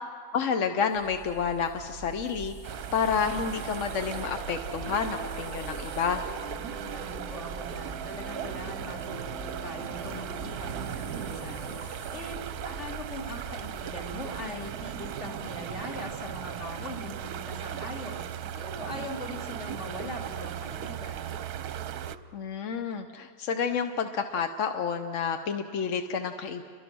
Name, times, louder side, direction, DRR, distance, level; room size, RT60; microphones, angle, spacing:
voice 1, 0.3-6.2 22.3-26.6, left 6 dB, 55° left, 7 dB, 1.0 m, -30 dB
sound 1, 0.9-14.7, right 3 dB, 80° left, 7.6 m, -44 dB
sound 2, 2.6-22.2, right 9 dB, 65° right, 1.2 m, -38 dB
sound 3, 3.5-11.8, right 4 dB, 10° left, 6.4 m, -44 dB
voice 2, 6.4-12.4 12.6-18.2 18.5-21.3, left 1 dB, 40° left, -1 dB, 3.7 m, -41 dB
29.5 x 23.5 x 6.2 m, 2.1 s
omnidirectional pair, 1.9 m